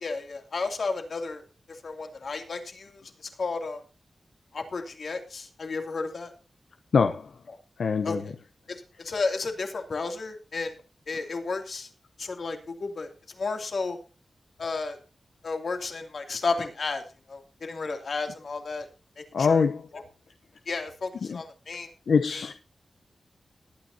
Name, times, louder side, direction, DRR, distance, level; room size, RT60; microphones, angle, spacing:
voice 1, 0.0-1.4 1.8-3.0 3.4-3.8 4.5-6.3 8.0-8.2 8.7-10.7 11.1-11.9 12.2-13.1 13.4-14.0 14.6-15.0 15.4-17.0 17.3-18.9 19.2-19.6 19.9-20.0 20.7-21.9 22.3-22.4, left 4 dB, 65° left, 2.6 m, -32 dB
voice 2, 6.9-7.3 7.8-8.2 19.3-19.8 21.2-21.4 22.1-22.5, left 5 dB, 85° left, 0.8 m, -23 dB
20.5 x 9.3 x 2.7 m
wide cardioid pair, 90°, 0 cm